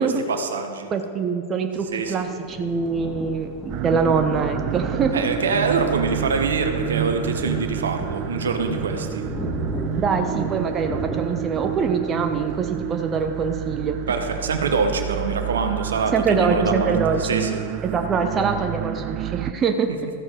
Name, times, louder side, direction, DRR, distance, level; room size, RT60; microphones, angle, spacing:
voice 1, 0.0-0.9 1.9-2.3 5.1-9.3 14.1-16.9 17.2-17.6 19.9-20.0, right 4 dB, 65° right, 6 dB, 1.0 m, -25 dB
voice 2, 0.9-3.5 3.8-5.3 10.0-14.0 16.1-17.4 17.8-19.9, right 5 dB, 25° right, 6 dB, 0.8 m, -24 dB
Thunder, 1.8-14.1, equal, 10° left, 1.7 m, -35 dB
sound 1, 3.7-19.5, right 13 dB, 40° right, 0.3 m, -29 dB
14.0 x 7.6 x 4.6 m, 2.4 s
figure-of-eight pair, 90°, 0 cm